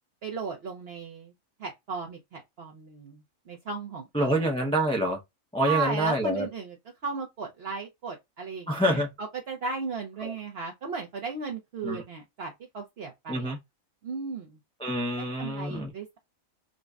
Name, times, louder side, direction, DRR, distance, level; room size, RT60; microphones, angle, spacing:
voice 1, 0.2-1.3 1.6-4.5 5.6-6.8 7.0-13.6 14.0-14.6 15.2-16.2, right 4 dB, 55° right, 0.9 m, -36 dB
voice 2, 4.1-5.2 5.5-6.4 8.7-9.1 10.2-10.3 11.8-12.0 13.3-13.6 14.8-15.9, right 1 dB, 5° left, 0.5 m, -26 dB
5.0 x 2.2 x 2.4 m
omnidirectional pair, 1.4 m